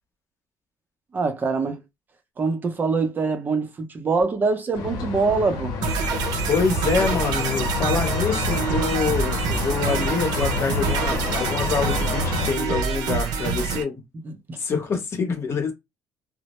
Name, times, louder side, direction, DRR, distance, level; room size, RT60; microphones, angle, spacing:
voice 1, 1.1-1.8 2.4-5.7 14.2-14.6, right 4 dB, 30° right, 0.6 m, -24 dB
sound 1, 4.7-12.5, left 3 dB, 85° left, 0.8 m, -28 dB
sound 2, 5.8-13.8, right 5 dB, 90° right, 0.6 m, -26 dB
voice 2, 6.5-13.9 14.6-15.7, left 5 dB, 45° left, 0.9 m, -26 dB
2.1 x 2.0 x 2.9 m
cardioid pair, 115°, 6 cm